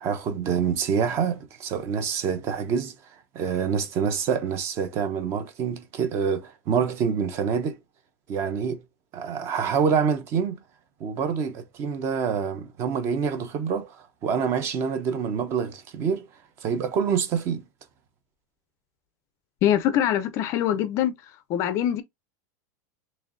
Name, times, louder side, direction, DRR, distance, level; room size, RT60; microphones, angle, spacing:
voice 1, 0.0-2.9 3.3-7.8 8.3-8.8 9.1-10.6 11.0-16.3 16.6-17.6, right 6 dB, 30° right, 0.6 m, -26 dB
voice 2, 19.6-21.1 21.5-22.0, left 11 dB, 30° left, 0.4 m, -23 dB
4.3 x 3.0 x 2.5 m
supercardioid pair, 170°, 9 cm